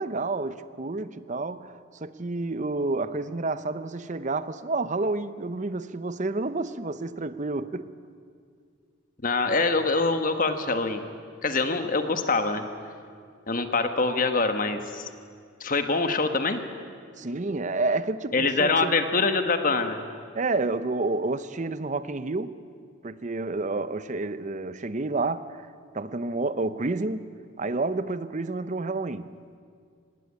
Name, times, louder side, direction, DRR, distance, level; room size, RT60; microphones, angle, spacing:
voice 1, 0.0-7.9 17.2-19.0 20.3-22.5 23.0-25.7 25.9-27.3 27.6-29.4, right 3 dB, 35° right, 0.7 m, -29 dB
voice 2, 9.2-11.1 11.4-12.6 13.5-15.1 15.6-16.6 18.3-20.0, left 3 dB, 40° left, 1.4 m, -24 dB
18.5 x 17.0 x 9.7 m
head